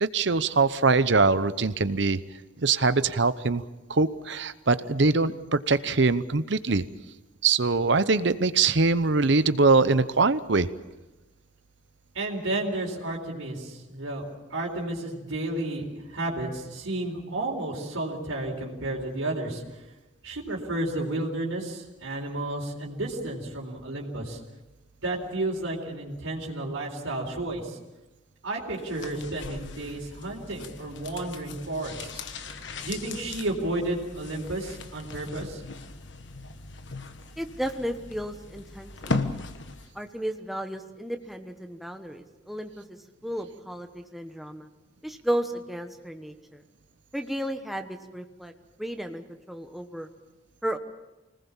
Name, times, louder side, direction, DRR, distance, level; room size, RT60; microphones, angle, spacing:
voice 1, 0.0-2.2 2.6-3.6 3.9-6.8 7.4-10.7, right 3 dB, 60° right, 14 dB, 0.8 m, -22 dB
voice 2, 12.1-14.2 14.5-19.8 20.2-24.4 25.0-27.8 28.4-32.2 32.8-35.6, right 2 dB, 80° right, -2 dB, 4.1 m, -32 dB
sound 1, 28.8-40.0 40.3-40.4, left 3 dB, 60° left, 1.3 m, -38 dB
voice 3, 37.4-39.3 39.9-43.0 43.2-44.7 45.0-46.6 47.1-48.5 48.8-50.1 50.6-50.8, equal, ahead, 5 dB, 1.2 m, -34 dB
25.5 x 19.5 x 7.2 m, 1.1 s
head